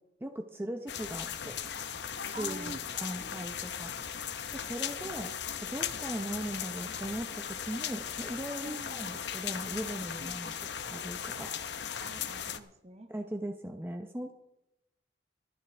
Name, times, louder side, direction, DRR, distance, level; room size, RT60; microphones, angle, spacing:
voice 1, 0.2-1.6 2.2-2.7 3.0-3.9 4.5-5.3 5.6-10.5 10.8-11.5 13.1-14.3, right 1 dB, 10° right, 4 dB, 0.7 m, -39 dB
sound 1, 0.9-12.6, left 8 dB, 70° left, 0.8 m, -38 dB
voice 2, 2.3-3.4 8.6-9.0 10.2-10.4 12.0-13.1, right 1 dB, 35° right, 8 dB, 1.0 m, -45 dB
25.0 x 9.4 x 3.4 m, 0.87 s
head